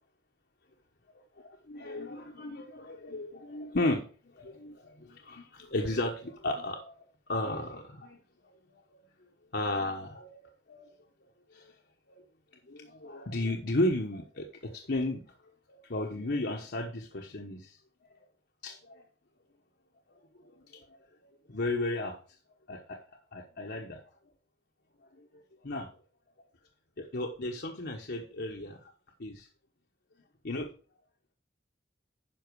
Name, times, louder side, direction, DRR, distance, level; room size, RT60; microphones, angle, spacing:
voice 1, 1.4-4.0 4.4-6.9 7.3-8.2 8.7-8.8 9.5-10.4 10.7-10.9 11.5-11.6 12.1-12.2 12.7-15.2 15.9-17.8 18.6-19.0 21.5-22.2 22.7-23.0 23.3-24.0 25.6-25.9 27.0-28.9 29.2-29.5 30.4-30.7, left 1 dB, 60° left, 1 dB, 1.1 m, -34 dB
10.0 x 5.9 x 4.7 m, 0.39 s
head